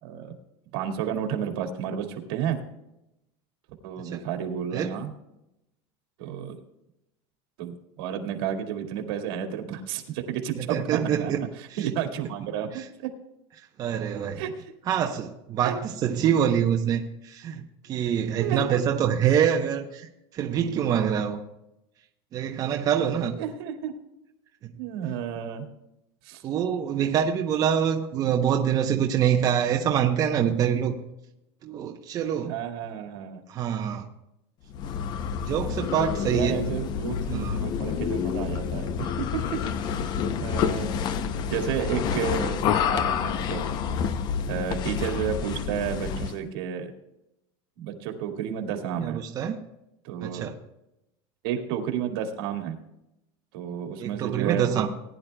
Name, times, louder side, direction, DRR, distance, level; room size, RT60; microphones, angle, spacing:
voice 1, 0.0-0.4 0.7-2.6 3.8-5.1 6.2-6.6 7.6-13.1 14.3-14.5 15.6-15.7 18.4-18.8 23.4-23.9 24.8-25.7 26.2-26.4 32.4-33.4 36.3-39.4 40.0-41.0 41.5-43.6 44.5-46.9 47.8-49.2 50.0-50.6 51.4-52.8 53.5-54.9, right 8 dB, 70° right, 4 dB, 2.0 m, -31 dB
voice 2, 10.5-11.5 12.7-12.8 13.8-14.4 14.9-21.4 22.3-23.4 26.4-30.9 31.6-32.5 33.5-34.1 35.4-36.6 37.3-37.6 49.0-49.6 50.2-50.5 54.0-54.9, right 8 dB, 30° right, 3 dB, 0.8 m, -25 dB
sound 1, 34.7-46.4, left 7 dB, 35° left, 0.6 m, -28 dB
19.0 x 10.5 x 2.2 m, 0.87 s
supercardioid pair, 165°, 13 cm